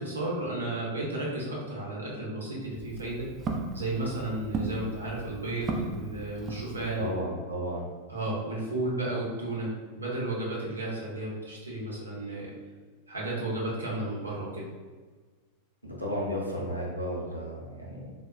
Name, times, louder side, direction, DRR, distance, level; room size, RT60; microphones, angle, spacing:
voice 1, 0.0-3.3 3.7-7.1 8.1-12.5 13.1-14.6, right 2 dB, 75° right, -5 dB, 0.8 m, -33 dB
Walk footsteps, 2.6-7.2, right 3 dB, 25° right, 0.3 m, -36 dB
voice 2, 7.0-7.9 15.8-18.1, equal, 85° left, -3 dB, 0.6 m, -33 dB
3.5 x 2.2 x 2.2 m, 1.4 s
figure-of-eight pair, 90°, 0 cm